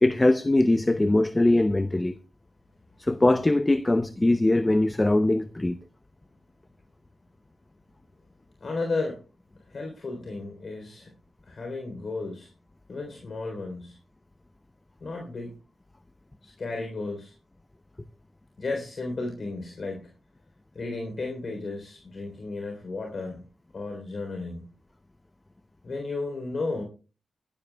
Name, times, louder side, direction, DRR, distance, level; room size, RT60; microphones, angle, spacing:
voice 1, 0.0-2.1 3.0-5.8, left 2 dB, 20° left, 0.7 m, -21 dB
voice 2, 8.6-9.2 9.7-11.1 11.4-12.5 12.9-14.0 15.0-15.6 16.4-17.3 18.6-20.1 20.7-23.4 23.7-24.6 25.8-26.8, left 3 dB, 55° left, 3.7 m, -33 dB
22.0 x 12.5 x 2.3 m
cardioid pair, 60°, 0 cm